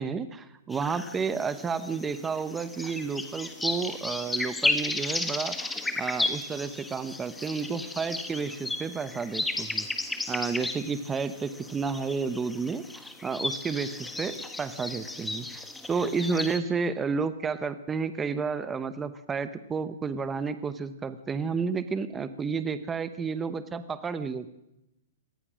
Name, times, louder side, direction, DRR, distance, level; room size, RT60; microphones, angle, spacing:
voice 1, 0.0-9.9 10.3-24.5, right 5 dB, 10° right, 13 dB, 0.9 m, -31 dB
sound 1, 0.7-16.6, left 2 dB, 5° left, 1.6 m, -34 dB
25.0 x 19.0 x 6.3 m, 0.88 s
hypercardioid pair, 160°, 0 cm